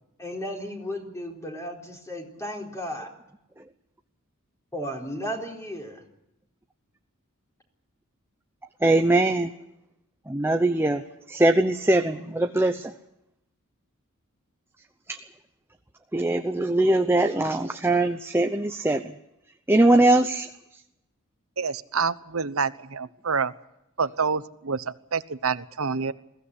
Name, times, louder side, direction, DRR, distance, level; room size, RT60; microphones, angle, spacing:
voice 1, 0.2-3.1 4.7-6.0, equal, 15° left, 1 dB, 4.2 m, -34 dB
voice 2, 8.8-9.5 10.3-11.0 11.3-12.9 15.1-15.2 16.1-19.0 19.7-20.5, right 2 dB, 10° right, 6 dB, 0.8 m, -21 dB
voice 3, 21.6-23.5 24.0-26.1, right 5 dB, 70° right, 15 dB, 1.0 m, -27 dB
21.5 x 16.0 x 9.9 m, 0.86 s
head